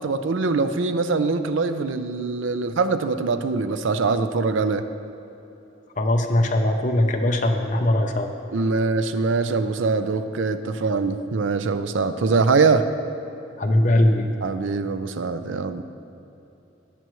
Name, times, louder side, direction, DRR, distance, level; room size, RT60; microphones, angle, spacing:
voice 1, 0.0-4.8 8.5-12.9 14.4-15.8, right 4 dB, 90° right, 10 dB, 0.5 m, -23 dB
voice 2, 6.0-8.3 13.6-14.3, left 1 dB, 40° left, 3 dB, 0.7 m, -20 dB
18.0 x 7.7 x 3.1 m, 3.0 s
head